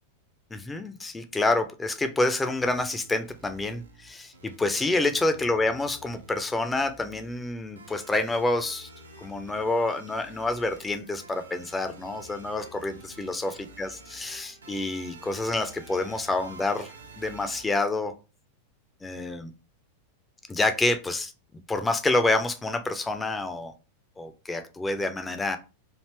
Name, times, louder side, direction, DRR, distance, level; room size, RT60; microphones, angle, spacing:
voice 1, 0.5-8.9 9.2-18.1 19.0-19.5 20.5-21.3 21.7-23.7 24.2-25.6, left 2 dB, 10° left, 7 dB, 0.5 m, -28 dB
sound 1, 2.6-17.6, right 2 dB, 75° right, 0.6 m, -49 dB
3.3 x 2.5 x 3.2 m, 0.32 s
figure-of-eight pair, 90°, 0 cm